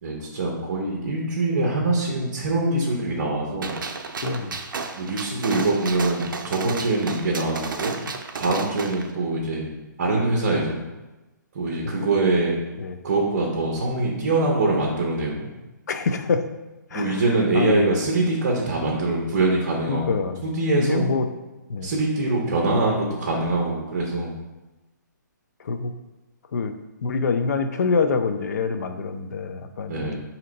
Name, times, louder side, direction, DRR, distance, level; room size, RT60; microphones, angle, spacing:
voice 1, 0.0-3.8 5.0-8.0 8.4-9.7 10.0-10.8 11.5-12.5 13.0-15.5 16.9-21.1 21.8-24.3 29.9-30.2, right 2 dB, 35° right, -1 dB, 0.6 m, -24 dB
Gunshot gunfire, 3.6-9.1, right 4 dB, 85° right, 0.5 m, -33 dB
voice 2, 4.2-4.6 5.6-5.7 6.6-6.8 8.5-8.6 12.8-13.0 15.9-16.5 16.9-17.2 17.5-17.9 19.9-20.4 20.8-21.3 21.7-21.9 25.6-25.9 26.5-26.7 27.0-30.2, left 4 dB, 60° left, 8 dB, 0.4 m, -25 dB
4.2 x 2.8 x 3.9 m, 1.1 s
hypercardioid pair, 170°, 10 cm